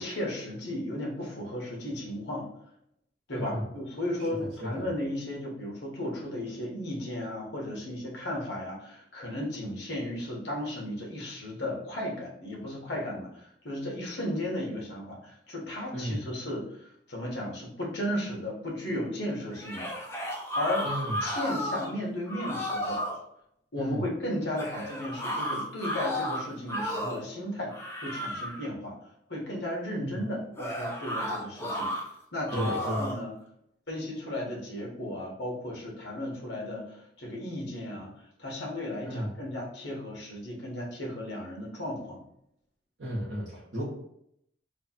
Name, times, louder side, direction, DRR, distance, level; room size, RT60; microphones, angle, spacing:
voice 1, 0.0-2.5 3.3-19.9 20.2-20.9 21.2-23.0 23.7-29.0 29.3-31.9 32.3-33.3 33.9-38.1 38.4-42.2, left 1 dB, 65° left, -2 dB, 1.2 m, -35 dB
voice 2, 3.3-3.7 4.4-4.9 15.9-16.3 20.8-21.2 23.8-24.1 30.0-30.2 32.5-33.1 37.9-38.1 39.0-39.3 43.0-43.8, equal, 70° right, -7 dB, 1.2 m, -34 dB
sound 1, 19.5-21.9 22.3-23.2 24.6-27.3 27.7-28.7 30.6-32.0 32.5-33.2, equal, 15° left, 0.6 m, -33 dB
3.2 x 2.4 x 4.2 m, 0.75 s
head